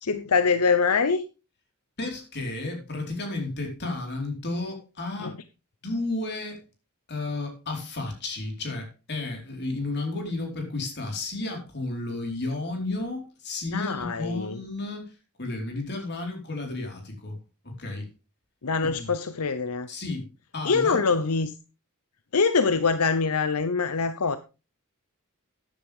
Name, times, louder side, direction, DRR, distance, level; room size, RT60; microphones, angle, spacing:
voice 1, 0.0-1.2 5.2-5.3 13.7-14.6 18.6-19.9 20.6-21.5 22.3-24.4, left 5 dB, 80° left, 0.8 m, -24 dB
voice 2, 2.0-5.3 5.8-6.6 7.1-15.1 15.4-17.4 17.6-18.1 18.8-19.1 19.9-21.1, left 2 dB, 50° left, 4.5 m, -32 dB
14.0 x 10.0 x 3.6 m
head